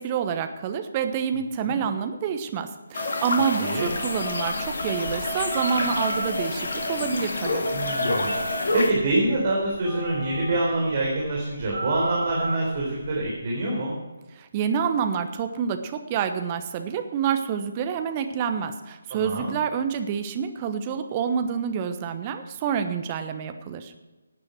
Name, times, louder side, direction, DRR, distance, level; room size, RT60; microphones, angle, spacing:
voice 1, 0.0-7.6 14.4-23.9, right 7 dB, 25° right, 8 dB, 1.1 m, -28 dB
sound 1, 2.9-8.9, left 2 dB, 55° left, 1.9 m, -28 dB
Telephone, 3.7-13.3, right 2 dB, 55° right, 4.9 m, -35 dB
voice 2, 7.7-8.3 8.7-13.9 19.1-19.5, right 2 dB, 40° right, -3 dB, 4.1 m, -26 dB
17.5 x 9.5 x 4.7 m, 1.2 s
figure-of-eight pair, 150°, 0 cm